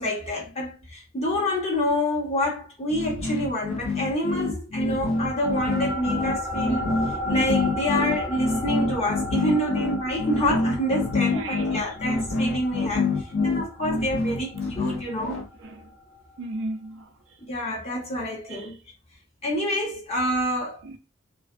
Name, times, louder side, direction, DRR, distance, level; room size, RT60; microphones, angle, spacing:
voice 1, 0.0-13.1 13.4-15.4 17.5-18.8 19.4-20.8, equal, 30° left, 1.0 m, -27 dB
sound 1, 2.9-15.5, left 3 dB, 65° left, 0.5 m, -26 dB
sound 2, 5.1-15.9, left 1 dB, 10° right, 0.5 m, -34 dB
voice 2, 11.3-11.9 15.6-15.8 16.4-17.0 18.5-18.7 20.8-21.0, right 2 dB, 65° right, 0.4 m, -35 dB
2.5 x 2.1 x 2.4 m
head